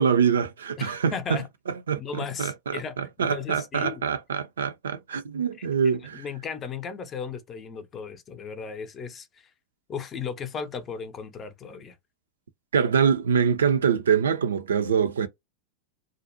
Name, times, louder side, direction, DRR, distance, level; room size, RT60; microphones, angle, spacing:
voice 1, 0.0-1.4 1.9-6.2 12.7-15.3, right 7 dB, 75° right, 0.3 m, -24 dB
voice 2, 0.8-1.5 2.0-4.0 5.5-9.3 9.9-12.0, left 6 dB, 30° left, 0.5 m, -36 dB
2.4 x 2.0 x 2.6 m
figure-of-eight pair, 90°, 0 cm